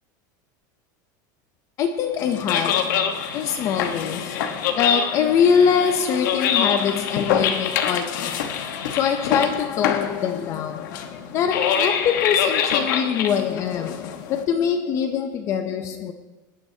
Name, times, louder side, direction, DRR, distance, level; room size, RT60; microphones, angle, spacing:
voice 1, 1.8-16.1, left 7 dB, 30° left, 0.5 m, -24 dB
sound 1, 2.2-14.4, left 8 dB, 70° left, 1.1 m, -25 dB
18.0 x 10.0 x 2.8 m
supercardioid pair, 175°, 11 cm